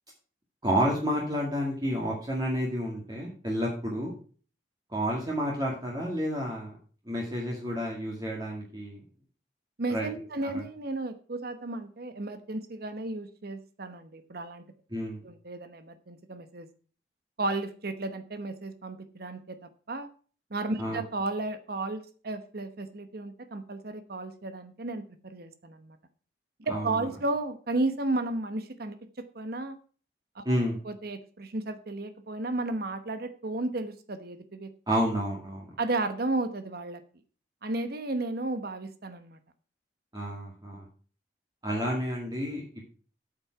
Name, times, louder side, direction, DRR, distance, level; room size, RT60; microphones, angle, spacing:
voice 1, 0.6-4.1 4.9-6.8 7.1-9.0 9.9-10.1 10.4-10.5 14.9-15.2 20.8-21.0 26.7-26.9 30.4-30.8 34.9-35.7 40.1-40.8 41.6-42.6, equal, 25° right, -3 dB, 2.1 m, -30 dB
voice 2, 9.8-14.6 15.2-16.7 17.4-19.6 19.9-20.1 20.5-26.0 26.6-29.8 30.3-30.6 30.8-34.7 35.8-37.0 37.6-39.4, right 2 dB, 60° right, 10 dB, 1.0 m, -33 dB
8.7 x 7.3 x 5.9 m, 0.41 s
head